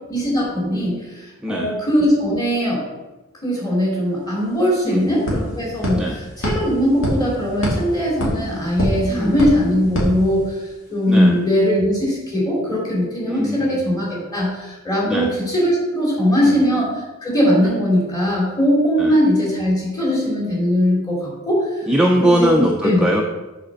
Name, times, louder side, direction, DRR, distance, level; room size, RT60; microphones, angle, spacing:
voice 1, 0.1-1.2 1.5-2.8 3.4-10.5 10.9-21.7 22.2-22.5 22.8-23.1, equal, 20° left, -5 dB, 2.8 m, -20 dB
voice 2, 1.4-1.8 4.9-5.2 5.9-6.2 9.1-9.5 11.1-11.4 13.3-13.8 15.0-15.3 16.4-16.6 19.0-19.2 21.9-23.2, right 1 dB, 5° right, 0 dB, 0.5 m, -20 dB
sound 1, 4.1-4.2 4.5-10.9, equal, 65° left, 2.4 m, -26 dB
7.4 x 4.3 x 6.4 m, 1.1 s
head